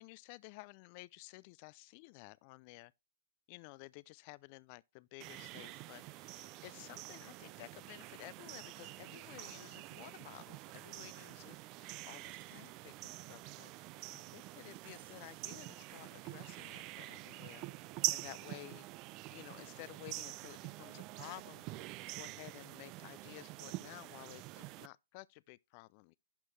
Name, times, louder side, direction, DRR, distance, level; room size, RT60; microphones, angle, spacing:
voice 1, 0.0-2.9 3.5-13.9 14.1-17.7 18.1-18.9 19.3-21.6 22.2-26.1, left 23 dB, 40° left, 0.3 m, -53 dB
sound 1, 5.2-24.9, right 19 dB, 35° right, 0.4 m, -46 dB
Screech, 10.6-15.6 16.3-16.4, right 11 dB, 55° right, 1.1 m, -67 dB
11.5 x 4.5 x 3.2 m
hypercardioid pair, 125°, 0 cm